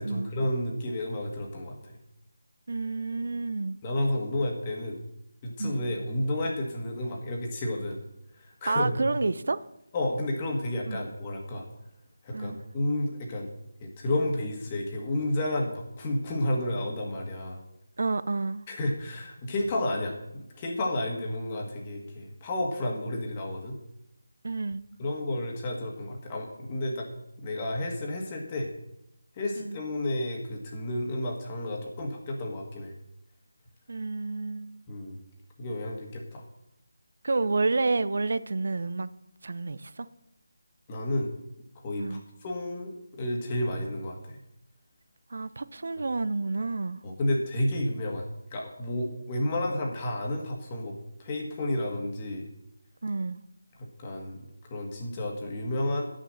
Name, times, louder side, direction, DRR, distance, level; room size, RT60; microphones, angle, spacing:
voice 1, 0.0-2.0 3.8-5.0 5.4-8.0 8.4-9.0 9.9-11.6 12.2-13.5 13.8-17.6 18.7-23.8 25.0-27.1 27.4-28.7 29.4-32.9 34.9-35.2 35.6-36.4 40.9-41.3 41.8-44.4 47.0-50.9 51.2-52.5 54.0-56.0, left 1 dB, 25° left, 1.7 m, -31 dB
voice 2, 2.7-3.8 5.6-5.8 8.7-9.6 10.9-11.0 12.3-12.6 18.0-18.6 24.4-24.9 29.6-29.8 33.9-34.8 37.2-39.1 39.4-40.1 42.0-42.2 45.3-47.0 53.0-53.4, right 3 dB, 55° right, 0.6 m, -29 dB
11.0 x 6.3 x 6.5 m
figure-of-eight pair, 160°, 0 cm